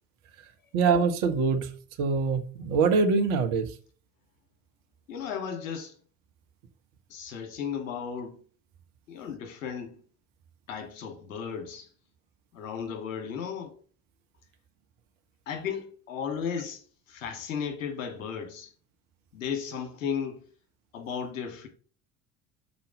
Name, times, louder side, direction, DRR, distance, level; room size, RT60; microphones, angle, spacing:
voice 1, 0.7-1.7 2.0-3.7, right 5 dB, 55° right, 1.2 m, -24 dB
voice 2, 5.1-5.9 7.1-8.4 9.1-10.0 10.7-11.9 12.5-13.7 15.5-16.8 17.1-18.7 19.3-20.5 20.9-21.7, left 7 dB, 70° left, 1.8 m, -35 dB
6.1 x 4.4 x 6.3 m
figure-of-eight pair, 65°, 40 cm